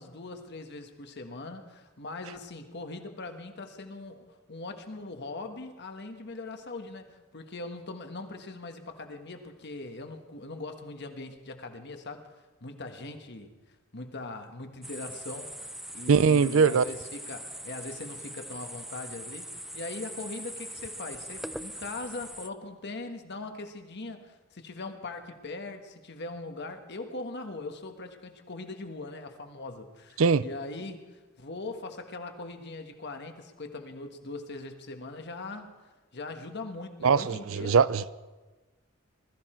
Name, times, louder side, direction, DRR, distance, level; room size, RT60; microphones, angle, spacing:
voice 1, 0.0-12.3 12.6-13.5 13.9-15.5 15.9-35.7 36.1-37.8, left 2 dB, 55° left, 1.5 m, -41 dB
sound 1, 14.8-22.5, right 1 dB, ahead, 0.4 m, -41 dB
voice 2, 16.1-16.8 30.2-30.4 37.0-38.1, right 5 dB, 70° right, 0.5 m, -21 dB
20.5 x 13.5 x 4.5 m
head